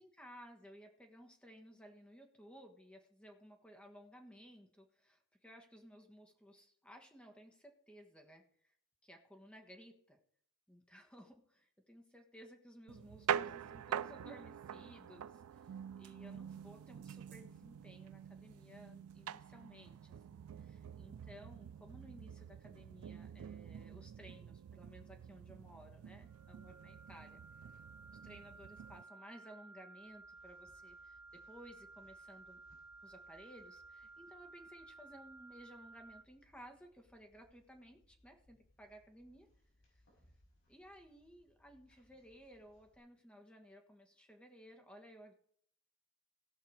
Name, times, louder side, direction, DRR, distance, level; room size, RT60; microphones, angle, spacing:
voice 1, 0.0-8.8 9.0-10.2 10.7-27.4 27.7-27.8 28.1-32.6 33.0-39.5 39.9-40.0 40.7-45.3, equal, 5° left, 3 dB, 1.3 m, -58 dB
sound 1, 12.9-29.0, right 9 dB, 75° right, 0.3 m, -46 dB
sound 2, 26.3-36.2, right 3 dB, 15° right, 0.8 m, -57 dB
sound 3, 29.9-43.0, left 1 dB, 70° left, 6.0 m, -72 dB
17.0 x 5.8 x 4.7 m, 0.62 s
head